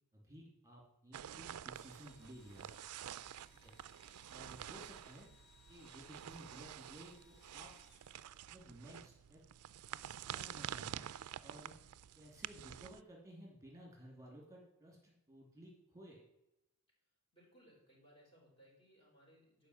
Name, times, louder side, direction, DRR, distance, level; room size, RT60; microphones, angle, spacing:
voice 1, 0.1-2.7 3.6-3.7 4.3-5.3 5.7-7.7 8.5-9.4 10.3-11.1 11.4-11.8 12.1-16.2, equal, 15° right, -2 dB, 2.8 m, -56 dB
sound 1, 1.1-13.0, right 10 dB, 85° right, 0.4 m, -49 dB
Engine / Drill, 1.6-9.0, left 4 dB, 50° left, 1.4 m, -69 dB
voice 2, 17.3-19.7, equal, 25° left, -3 dB, 4.5 m, -65 dB
11.5 x 5.1 x 8.0 m, 0.88 s
head